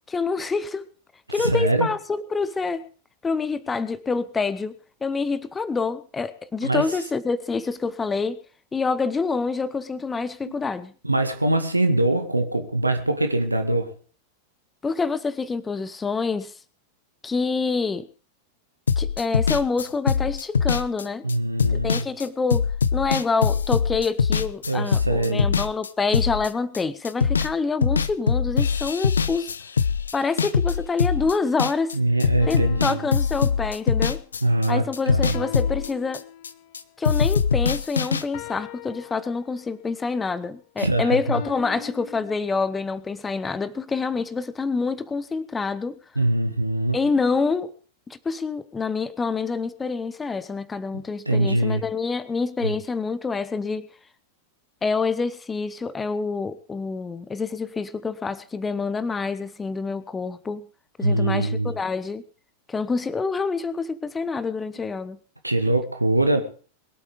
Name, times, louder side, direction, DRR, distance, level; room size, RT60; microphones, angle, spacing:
voice 1, 0.1-0.9 1.3-2.9 3.2-4.7 5.0-8.4 8.7-10.9 14.8-16.5 17.2-18.1 19.0-21.3 21.7-29.5 30.1-32.0 32.5-34.2 34.7-36.2 37.0-46.0 46.9-47.7 48.1-53.9 54.8-60.7 61.0-62.2 62.7-65.2, left 4 dB, 15° left, 16 dB, 1.1 m, -27 dB
voice 2, 1.4-1.9 6.6-6.9 10.4-10.5 11.0-13.9 21.2-22.1 24.7-25.5 31.9-33.0 34.4-35.5 40.8-41.4 46.2-47.0 51.3-51.8 52.6-52.7 61.0-61.7 65.4-66.4, right 1 dB, 85° right, 6 dB, 2.0 m, -23 dB
sound 1, 18.9-26.8 27.0-27.5 27.8-31.9 32.2-34.7 34.9-36.8 37.0-38.2, left 6 dB, 70° left, 0.8 m, -23 dB
sound 2, 32.4-34.2 35.3-36.8 38.3-39.9 41.3-42.4, left 13 dB, 45° left, 1.3 m, -41 dB
22.0 x 8.5 x 5.0 m, 0.41 s
figure-of-eight pair, 90°, 0 cm